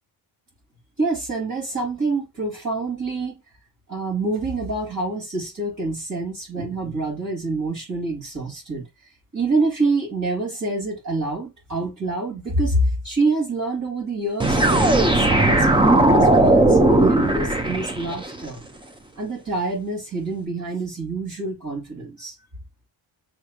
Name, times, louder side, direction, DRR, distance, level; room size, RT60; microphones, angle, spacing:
voice 1, 1.0-3.4 3.9-8.9 9.3-18.6 19.2-22.3, right 2 dB, 40° right, 2.9 m, -26 dB
sound 1, 14.4-18.3, right 2 dB, 10° right, 0.6 m, -17 dB
6.4 x 3.2 x 2.5 m
cardioid pair, 120°, 45 cm